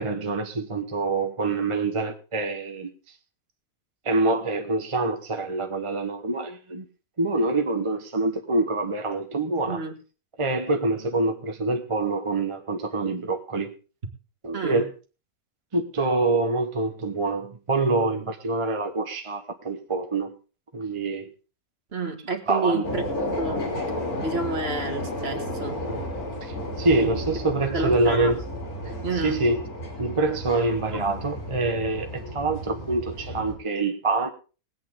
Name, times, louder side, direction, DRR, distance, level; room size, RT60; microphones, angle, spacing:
voice 1, 0.0-3.1 4.0-6.9 7.2-9.8 10.4-13.7 14.4-14.9 15.7-20.3 20.7-21.3 22.5-22.8 26.4-28.4 29.1-29.6 30.0-34.3, right 3 dB, 25° right, 0.9 m, -25 dB
voice 2, 14.5-14.9 21.9-23.0 23.4-23.7 24.2-25.8 27.7-28.4 29.0-29.4 30.9-31.0, right 3 dB, 45° right, 1.7 m, -29 dB
sound 1, 22.8-33.5, left 1 dB, 70° left, 3.6 m, -32 dB
20.5 x 8.6 x 3.6 m
omnidirectional pair, 1.6 m